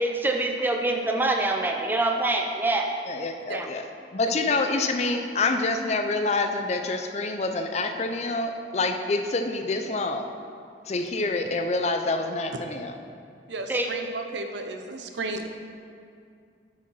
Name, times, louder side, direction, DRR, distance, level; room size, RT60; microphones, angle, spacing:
voice 1, 0.0-2.9 3.5-3.7 13.7-13.9, right 2 dB, 10° right, 2 dB, 0.6 m, -25 dB
voice 2, 3.1-3.8 4.1-10.2 10.9-13.0, left 3 dB, 35° left, 6 dB, 0.5 m, -27 dB
voice 3, 13.5-15.5, right 2 dB, 75° right, 6 dB, 0.6 m, -33 dB
8.3 x 5.0 x 5.6 m, 2.4 s
head